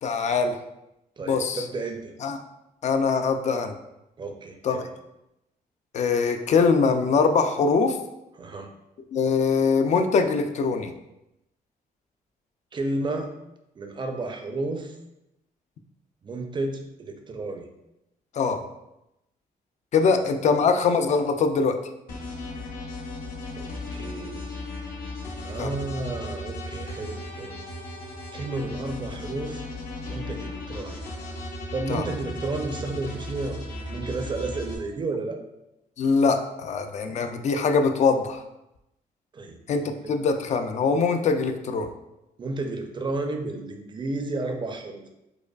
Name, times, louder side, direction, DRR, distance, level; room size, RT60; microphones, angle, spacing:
voice 1, 0.0-0.6 1.3-1.6 2.2-2.4 2.8-3.7 4.6-4.8 5.9-8.0 9.1-10.9 18.4-18.6 19.9-21.7 25.6-25.7 31.9-32.0 36.0-38.4 39.7-41.9, left 5 dB, 50° left, 7 dB, 0.4 m, -22 dB
voice 2, 1.2-2.1 4.2-4.9 8.4-8.7 12.7-13.3 13.8-14.9 16.2-17.7 23.5-23.7 23.9-24.6 25.4-27.6 28.3-29.7 30.1-31.0 31.7-33.6 33.9-35.4 39.3-40.1 42.4-45.1, right 2 dB, 30° right, 4 dB, 0.5 m, -32 dB
sound 1, 22.1-34.7, left 1 dB, 70° left, 0.9 m, -36 dB
4.8 x 2.2 x 2.3 m, 0.89 s
cardioid pair, 100°, 15 cm